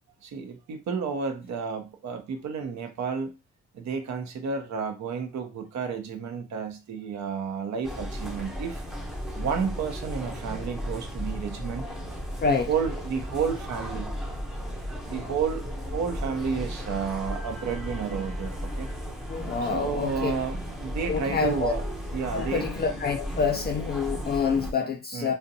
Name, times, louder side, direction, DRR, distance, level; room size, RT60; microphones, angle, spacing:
voice 1, 0.2-3.3 3.7-8.8 9.4-11.8 12.4-14.1 15.1-18.9 19.6-22.7 25.1-25.3, right 6 dB, 65° right, 0.7 m, -31 dB
sound 1, 7.8-24.7, equal, ahead, 0.7 m, -35 dB
voice 2, 19.3-20.3 21.1-21.7 22.3-25.3, left 5 dB, 35° left, 0.4 m, -27 dB
2.6 x 2.2 x 2.6 m
cardioid pair, 90°, 30 cm